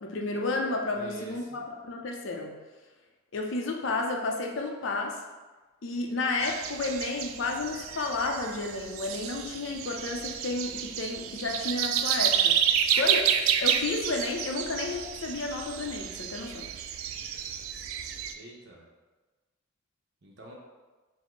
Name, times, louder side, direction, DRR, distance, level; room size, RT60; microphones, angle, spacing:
voice 1, 0.0-2.6 3.3-5.2 5.8-12.6 12.9-13.2 13.6-16.7, left 3 dB, 65° left, 1 dB, 0.5 m, -32 dB
voice 2, 0.9-1.6 18.4-18.8 20.2-20.5, right 2 dB, 55° right, -2 dB, 0.8 m, -45 dB
sound 1, 6.4-18.3, right 8 dB, 80° right, 0.3 m, -30 dB
5.2 x 2.1 x 3.8 m, 1.2 s
head